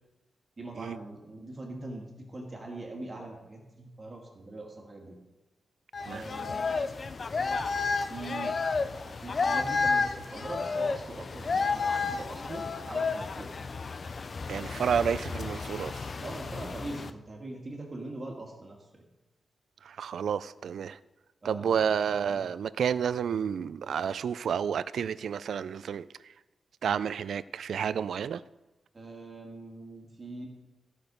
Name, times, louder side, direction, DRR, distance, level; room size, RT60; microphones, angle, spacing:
voice 1, 0.6-5.2 6.1-6.6 8.1-13.5 16.2-19.0 21.4-21.9 22.3-22.5 28.9-30.5, right 2 dB, 25° right, 0 dB, 1.8 m, -42 dB
sound 1, 5.9-17.1, left 4 dB, 35° left, 0.4 m, -31 dB
voice 2, 14.5-16.1 19.8-21.0 21.4-26.1 26.8-28.4, right 7 dB, 75° right, 16 dB, 0.3 m, -30 dB
15.0 x 6.1 x 5.2 m, 1.1 s
wide cardioid pair, 160°, 0 cm